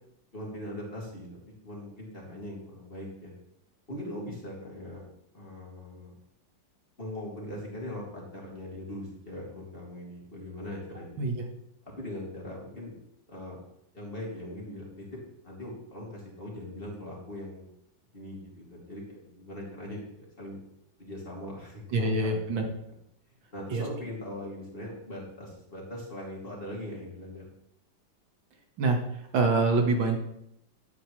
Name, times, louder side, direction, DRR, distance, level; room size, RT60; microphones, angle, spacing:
voice 1, 0.3-3.3 3.9-5.0 5.3-6.1 7.0-11.2 11.8-12.9 13.3-13.6 13.9-15.2 15.4-17.7 18.1-20.6 21.0-22.6 23.5-27.4, left 1 dB, 30° left, -3 dB, 2.8 m, -40 dB
voice 2, 21.9-22.6 23.7-23.9 28.8-29.0 29.3-30.2, right 3 dB, 80° right, 2 dB, 2.2 m, -25 dB
10.5 x 9.1 x 3.2 m, 0.78 s
omnidirectional pair, 2.0 m